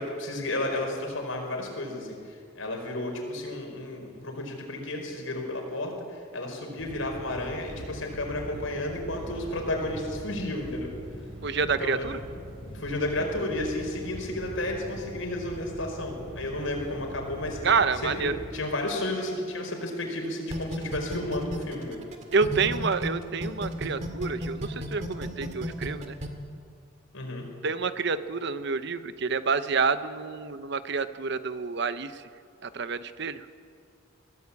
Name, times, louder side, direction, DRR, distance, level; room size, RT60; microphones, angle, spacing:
voice 1, 0.0-10.9 11.6-12.1 12.7-17.6 18.0-22.0 27.1-27.5, left 1 dB, 80° left, 2 dB, 5.0 m, -32 dB
sound 1, 6.8-18.5, equal, 85° right, 7.3 m, -42 dB
voice 2, 11.4-12.2 17.6-18.4 22.3-26.1 27.6-32.2 32.6-33.4, right 5 dB, 60° right, 12 dB, 0.9 m, -28 dB
sound 2, 20.5-23.1 23.4-26.3, equal, 35° right, 2.2 m, -33 dB
22.5 x 16.0 x 8.5 m, 2.2 s
head